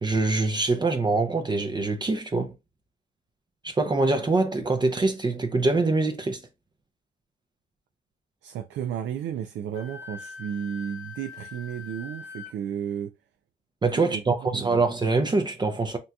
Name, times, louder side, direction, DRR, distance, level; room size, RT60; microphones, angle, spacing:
voice 1, 0.0-2.5 3.6-6.4 13.8-16.0, right 3 dB, 20° right, 0.5 m, -24 dB
voice 2, 8.4-13.1 14.1-14.8, right 9 dB, 70° right, 0.4 m, -33 dB
Wind instrument woodwind instrument, 9.7-12.5, left 5 dB, 90° left, 0.7 m, -42 dB
3.8 x 2.8 x 2.2 m
cardioid pair, 90°, 20 cm